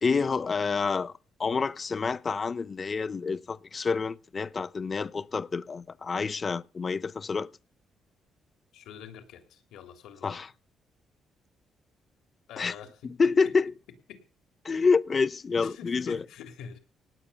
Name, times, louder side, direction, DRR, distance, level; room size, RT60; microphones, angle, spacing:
voice 1, 0.0-1.1 1.4-7.5 10.2-10.5 12.6-12.7 13.0-13.7 14.6-16.2, left 4 dB, 35° left, 0.7 m, -28 dB
voice 2, 8.7-10.4 12.5-13.5 14.1-14.2 15.6-16.8, left 8 dB, 85° left, 3.2 m, -46 dB
18.0 x 8.6 x 6.9 m
cardioid pair, 90°, 0 cm